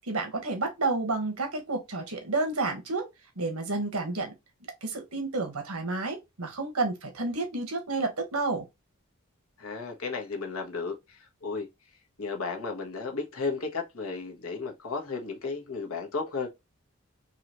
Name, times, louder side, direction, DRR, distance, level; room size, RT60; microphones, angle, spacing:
voice 1, 0.1-3.1 3.4-4.3 4.8-8.7, right 3 dB, 90° right, 1.3 m, -30 dB
voice 2, 9.6-11.7 12.2-16.5, left 4 dB, 75° left, 1.1 m, -34 dB
3.9 x 3.0 x 2.9 m
head